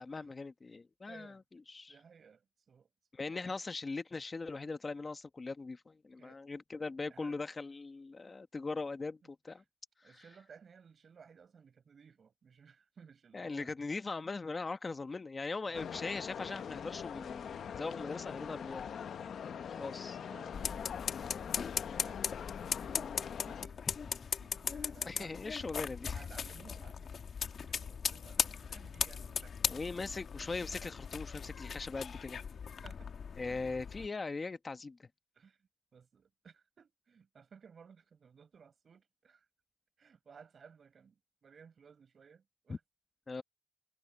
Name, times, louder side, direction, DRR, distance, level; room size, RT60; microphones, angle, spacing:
voice 1, 0.0-1.4 1.7-1.9 3.1-9.6 13.3-19.1 19.4-20.2 23.9-24.0 25.1-26.2 29.7-32.4 33.4-35.1 42.7-42.8 43.3-43.4, left 3 dB, 30° left, 1.0 m, -40 dB
voice 2, 1.1-1.4 1.9-2.9 3.3-3.5 6.2-6.4 7.1-7.4 9.2-9.6 10.0-13.7 15.6-15.9 20.1-23.8 24.4-25.5 26.1-27.2 27.4-30.0 32.8-33.6 35.3-39.5 40.0-42.8, right 6 dB, 60° right, 4.9 m, -59 dB
sound 1, 15.7-23.7, left 8 dB, 85° left, 0.8 m, -43 dB
sound 2, 20.5-34.1, left 6 dB, 65° left, 1.4 m, -39 dB
wide cardioid pair, 125°, 0 cm